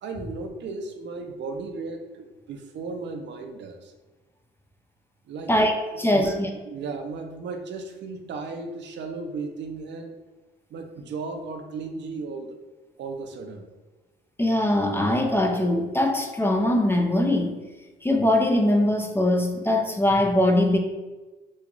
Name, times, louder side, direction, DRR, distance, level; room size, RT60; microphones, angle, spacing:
voice 1, 0.0-3.9 5.3-5.5 5.9-6.3 6.6-10.2 10.7-12.6 13.0-13.7, right 4 dB, 65° right, 4 dB, 0.6 m, -35 dB
voice 2, 5.5-6.5 14.4-17.5 18.0-20.8, left 1 dB, 10° left, 3 dB, 0.4 m, -22 dB
3.1 x 2.4 x 3.7 m, 1.2 s
cardioid pair, 90°, 20 cm